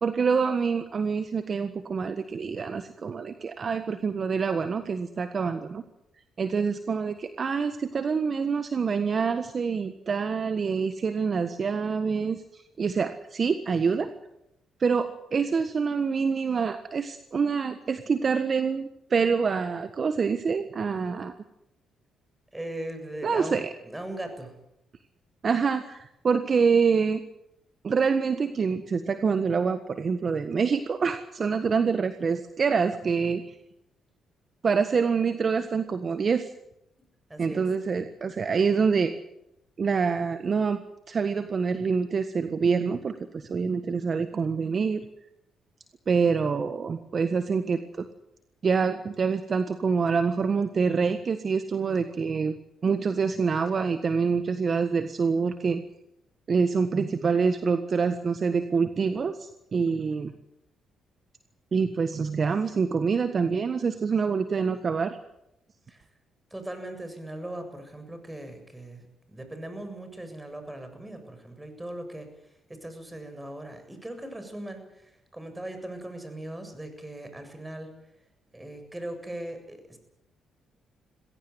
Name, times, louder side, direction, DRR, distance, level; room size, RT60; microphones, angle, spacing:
voice 1, 0.0-5.8 6.4-14.1 14.8-21.3 23.2-23.7 25.4-27.2 27.8-33.5 34.6-36.5 37.4-39.1 39.8-40.8 41.1-45.0 46.1-48.0 48.6-52.5 52.8-55.8 56.5-60.3 61.7-65.2, right 5 dB, 45° right, 9 dB, 1.5 m, -26 dB
voice 2, 22.5-24.5 37.3-37.6 65.9-66.0 66.5-72.3 72.7-77.9 78.5-80.0, right 1 dB, 15° right, 7 dB, 7.4 m, -39 dB
21.5 x 17.0 x 9.7 m, 0.83 s
supercardioid pair, 65°, 0 cm